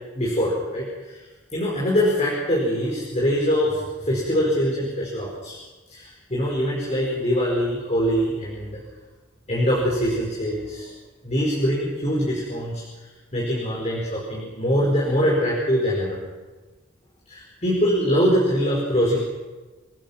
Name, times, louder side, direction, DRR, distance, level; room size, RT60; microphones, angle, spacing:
voice 1, 0.1-1.2 1.5-5.6 5.9-8.8 9.5-10.9 11.2-12.8 13.3-16.2 17.3-19.2, equal, 35° left, -4 dB, 5.0 m, -23 dB
28.0 x 18.5 x 5.9 m, 1.3 s
head